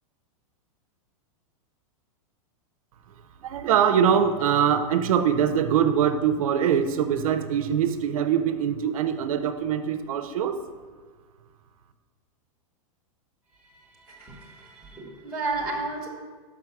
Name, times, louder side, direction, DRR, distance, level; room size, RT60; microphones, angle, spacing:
voice 1, 3.4-10.6, right 8 dB, 75° right, 10 dB, 0.7 m, -23 dB
voice 2, 13.7-16.1, right 3 dB, 5° right, -5 dB, 1.3 m, -33 dB
6.1 x 5.9 x 6.0 m, 1.4 s
supercardioid pair, 160°, 18 cm